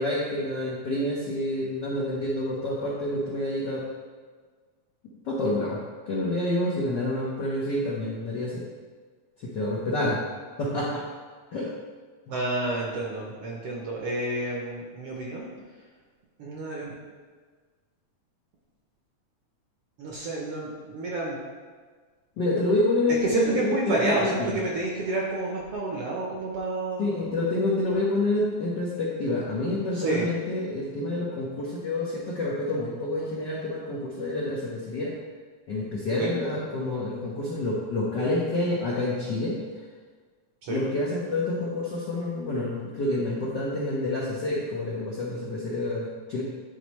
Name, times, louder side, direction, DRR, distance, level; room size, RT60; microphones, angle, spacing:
voice 1, 0.0-3.8 5.2-8.6 9.4-10.2 10.6-11.1 11.5-11.7 22.4-24.6 27.0-35.2 35.7-39.6 40.7-46.4, left 2 dB, 75° left, -6 dB, 1.0 m, -28 dB
voice 2, 12.3-15.5 16.4-16.9 20.0-21.4 23.2-27.2 29.9-30.2 36.1-36.3 40.6-40.8, right 2 dB, 65° right, -3 dB, 1.5 m, -29 dB
11.0 x 4.1 x 3.2 m, 1.5 s
omnidirectional pair, 3.5 m